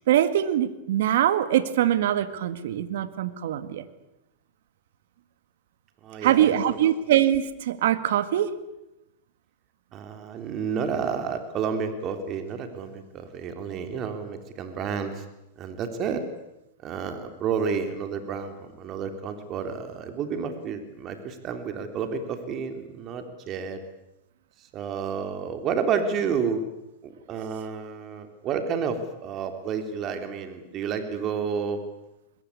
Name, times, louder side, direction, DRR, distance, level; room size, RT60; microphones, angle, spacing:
voice 1, 0.1-3.8 6.2-8.5, right 11 dB, 70° right, 12 dB, 1.9 m, -23 dB
voice 2, 6.0-7.0 9.9-15.2 15.6-16.2 16.8-23.8 24.7-26.6 27.0-31.8, right 6 dB, 40° right, 7 dB, 3.4 m, -30 dB
24.0 x 22.0 x 8.6 m, 0.91 s
hypercardioid pair, 105°, 0 cm